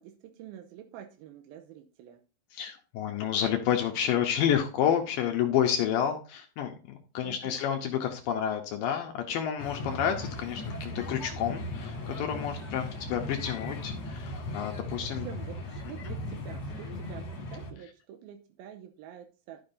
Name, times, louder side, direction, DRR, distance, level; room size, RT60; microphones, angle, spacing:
voice 1, 0.0-2.2 7.2-7.9 15.2-19.6, right 10 dB, 80° right, 6 dB, 2.3 m, -47 dB
voice 2, 2.5-15.3, left 9 dB, 75° left, 3 dB, 2.1 m, -30 dB
sound 1, 9.6-17.7, left 1 dB, 50° left, 2.2 m, -38 dB
12.0 x 7.1 x 2.6 m, 0.36 s
omnidirectional pair, 4.8 m